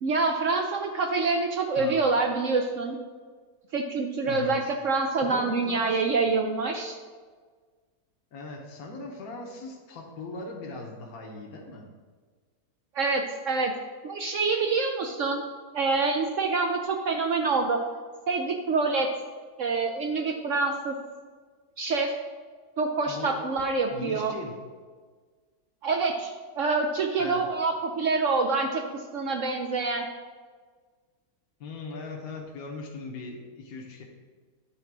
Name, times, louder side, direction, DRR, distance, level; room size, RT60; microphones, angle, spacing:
voice 1, 0.0-3.0 3.7-7.0 12.9-13.7 14.0-15.4 15.7-17.8 18.3-19.1 19.6-20.9 21.8-22.1 22.8-24.3 25.8-30.1, right 4 dB, 65° right, 3 dB, 0.8 m, -26 dB
voice 2, 4.2-4.7 5.1-6.0 8.3-11.8 23.1-23.4 23.9-24.5 27.2-27.5 31.6-34.0, left 3 dB, 60° left, 0 dB, 1.4 m, -39 dB
9.3 x 3.8 x 6.0 m, 1.5 s
omnidirectional pair, 1.8 m